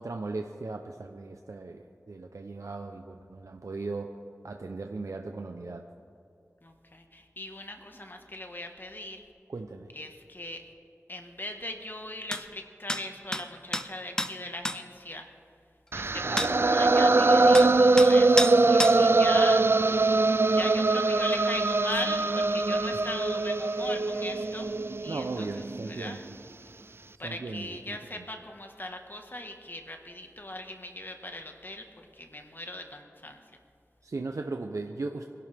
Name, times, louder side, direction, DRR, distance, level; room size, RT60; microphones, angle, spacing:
voice 1, 0.0-4.1 4.4-5.8 9.5-9.9 16.2-16.5 25.1-26.3 27.2-28.2 34.0-35.2, right 3 dB, 80° right, 4 dB, 0.7 m, -37 dB
voice 2, 6.6-9.2 9.9-10.6 11.1-15.3 15.9-20.0 20.5-24.7 25.0-26.2 27.2-33.4, left 1 dB, 40° left, 4 dB, 1.5 m, -39 dB
sound 1, 12.3-12.4 12.9-13.0 13.3-13.4 13.7-13.9 14.2-14.3 14.6-14.8 16.4-16.5 17.5-17.7 18.0-18.1 18.4-18.5 18.8-19.0, left 1 dB, 15° left, 0.7 m, -28 dB
sound 2, 15.9-26.0, right 3 dB, 50° right, 0.4 m, -22 dB
24.5 x 11.5 x 3.5 m, 2.4 s
wide cardioid pair, 40°, 5 cm